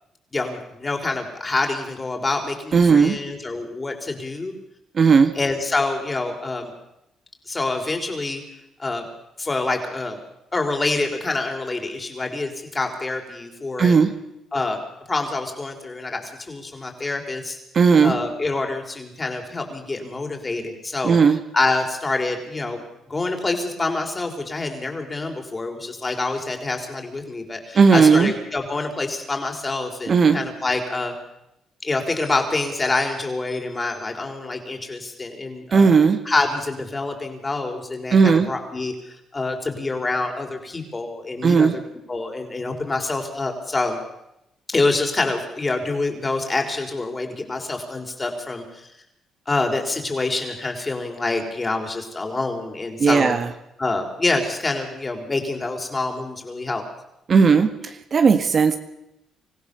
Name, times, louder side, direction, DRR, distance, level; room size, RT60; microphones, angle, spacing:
voice 1, 0.3-4.5 5.3-6.7 7.5-8.4 8.8-9.1 9.4-10.2 10.5-14.0 14.5-14.8 15.1-17.6 18.0-21.2 21.5-22.8 23.1-31.1 31.8-36.0 36.2-38.9 39.3-41.7 42.1-44.0 44.7-48.9 49.5-53.3 53.8-56.8, left 3 dB, 25° left, 3 dB, 4.9 m, -26 dB
voice 2, 2.7-3.2 5.0-5.3 13.8-14.1 17.7-18.2 21.0-21.4 27.8-28.3 30.1-30.4 35.7-36.2 38.1-38.5 41.4-41.8 53.0-53.5 57.3-57.7 58.1-58.8, right 5 dB, 45° right, 8 dB, 1.8 m, -15 dB
26.0 x 15.5 x 7.0 m, 0.84 s
cardioid pair, 90°, 0 cm